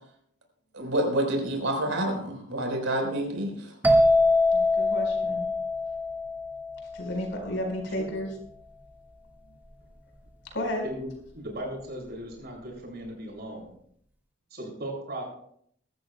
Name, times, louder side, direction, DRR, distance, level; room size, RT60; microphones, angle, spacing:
voice 1, 0.7-3.6, right 1 dB, 85° right, 2 dB, 4.2 m, -28 dB
sound 1, 3.8-7.5, left 2 dB, 10° right, 1.6 m, -24 dB
voice 2, 4.5-5.5 6.9-8.3 10.5-10.8, left 1 dB, 70° left, 2 dB, 4.5 m, -32 dB
voice 3, 11.3-13.7 14.5-15.2, right 1 dB, 55° right, -1 dB, 6.7 m, -37 dB
22.5 x 13.5 x 2.2 m, 0.66 s
head